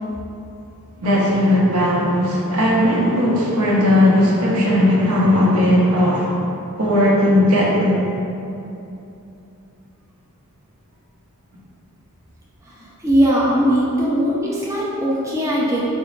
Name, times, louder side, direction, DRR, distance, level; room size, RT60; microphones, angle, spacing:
voice 1, 1.0-6.4 6.8-8.0, left 1 dB, 75° right, -5 dB, 0.7 m, -17 dB
voice 2, 12.7-15.9, equal, 15° right, -6 dB, 0.4 m, -20 dB
3.8 x 2.1 x 3.0 m, 2.8 s
head